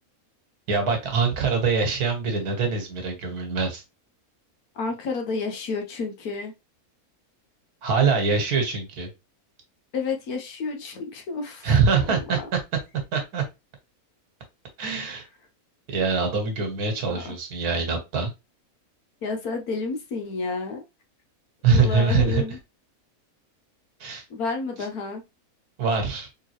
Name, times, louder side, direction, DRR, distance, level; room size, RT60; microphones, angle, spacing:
voice 1, 0.7-3.8 7.8-9.1 11.6-12.6 13.1-13.4 14.8-15.2 15.9-18.3 21.6-22.4 24.0-24.2 25.8-26.3, right 5 dB, 80° right, 4 dB, 1.7 m, -23 dB
voice 2, 4.7-6.5 9.9-11.7 12.1-12.5 17.1-17.2 19.2-20.8 21.7-22.6 24.3-25.2, left 4 dB, 75° left, 3 dB, 1.3 m, -30 dB
3.8 x 3.5 x 2.9 m, 0.24 s
omnidirectional pair, 1.6 m